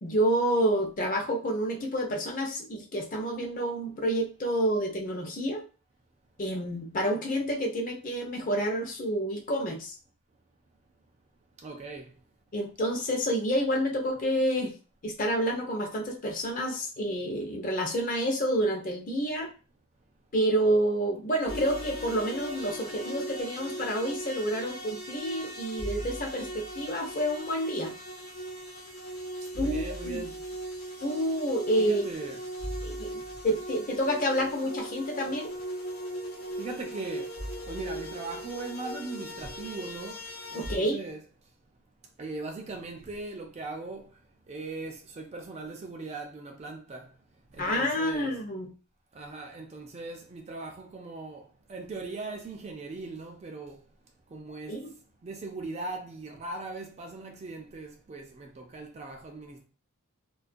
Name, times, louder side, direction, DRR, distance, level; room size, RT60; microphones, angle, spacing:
voice 1, 0.0-5.6 6.4-9.9 12.5-14.7 15.0-19.5 20.3-27.9 29.6-30.2 31.0-32.0 32.8-33.2 33.4-35.5 40.5-41.0 47.6-48.7 54.7-54.8, equal, 35° left, 0.5 m, -29 dB
voice 2, 11.6-12.1 29.5-30.4 31.8-32.4 35.3-35.4 36.6-37.3 37.7-40.2 40.5-41.2 42.2-44.0 44.5-47.1 47.5-48.3 49.1-51.4 51.7-53.8 54.3-54.7 55.2-59.6, right 3 dB, 30° right, 0.3 m, -39 dB
sound 1, 21.5-40.8, right 1 dB, 80° left, 0.9 m, -38 dB
2.3 x 2.2 x 2.5 m
head